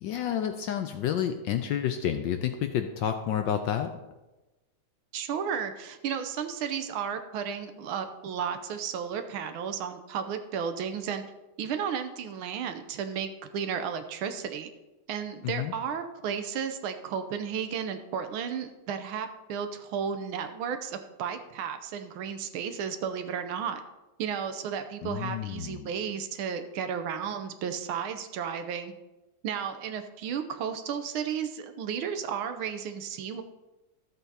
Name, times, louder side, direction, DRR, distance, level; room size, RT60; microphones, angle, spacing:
voice 1, 0.0-3.9 15.4-15.7 25.0-25.9, left 9 dB, 75° left, 7 dB, 1.1 m, -30 dB
voice 2, 5.1-11.2 11.6-14.7 15.1-23.8 24.2-28.9 29.4-33.4, right 7 dB, 75° right, 8 dB, 1.5 m, -33 dB
13.5 x 8.0 x 2.8 m, 1.1 s
omnidirectional pair, 2.4 m